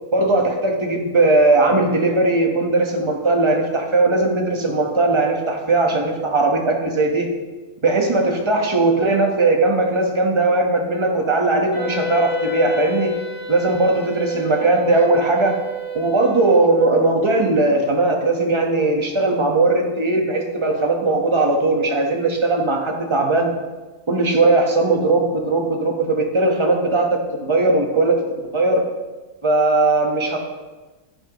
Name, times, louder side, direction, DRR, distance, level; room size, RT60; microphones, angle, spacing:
voice 1, 0.1-7.3 7.8-13.1 13.5-15.5 15.9-23.5 24.1-28.8 29.4-30.4, right 2 dB, 20° right, 1 dB, 1.0 m, -18 dB
Wind instrument woodwind instrument, 11.7-16.9, left 3 dB, 15° left, 3.9 m, -29 dB
13.5 x 9.8 x 3.1 m, 1.2 s
omnidirectional pair, 2.0 m